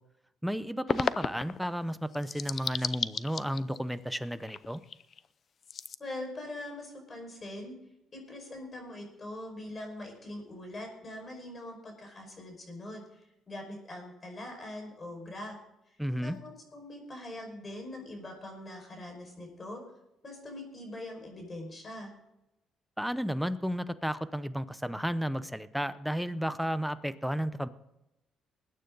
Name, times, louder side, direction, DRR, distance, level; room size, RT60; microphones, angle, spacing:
voice 1, 0.4-4.8 16.0-16.4 23.0-27.7, equal, ahead, 12 dB, 0.8 m, -33 dB
sound 1, 0.9-1.7 2.1-3.9 4.3-5.2 5.6-5.9, left 7 dB, 45° left, 0.5 m, -33 dB
voice 2, 6.0-7.7 8.1-13.2 13.5-15.6 16.2-19.8 20.2-22.1, left 1 dB, 30° left, 2 dB, 5.3 m, -42 dB
20.5 x 9.4 x 3.9 m, 0.88 s
cardioid pair, 105°, 0 cm